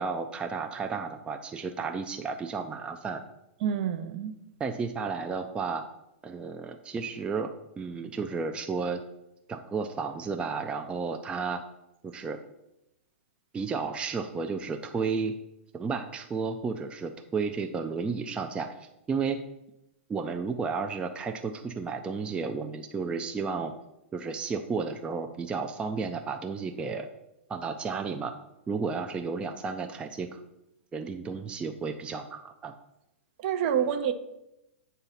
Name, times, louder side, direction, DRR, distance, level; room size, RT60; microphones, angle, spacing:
voice 1, 0.0-3.2 4.6-5.8 6.2-7.5 7.8-9.0 9.5-11.6 12.0-12.4 13.5-15.3 15.7-18.7 19.1-19.4 20.1-23.7 24.1-27.1 27.5-28.3 28.7-30.4 30.9-32.7, right 5 dB, 15° right, 0.4 m, -32 dB
voice 2, 3.6-4.3 33.4-34.1, right 8 dB, 50° right, 0.7 m, -27 dB
7.9 x 2.7 x 5.7 m
hypercardioid pair, 110°, 7 cm